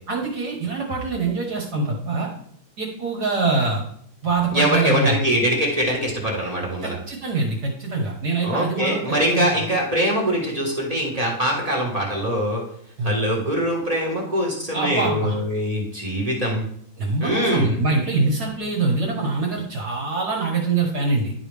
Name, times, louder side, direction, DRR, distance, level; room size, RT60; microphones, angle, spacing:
voice 1, 0.1-2.3 2.8-3.8 4.2-5.2 6.8-9.5 13.0-13.1 14.7-15.3 17.0-21.3, right 3 dB, 55° right, -1 dB, 1.6 m, -24 dB
voice 2, 4.5-7.0 8.4-12.6 13.0-16.6 17.2-17.7, equal, 20° right, -3 dB, 1.5 m, -23 dB
11.0 x 4.8 x 3.4 m, 0.66 s
omnidirectional pair, 2.2 m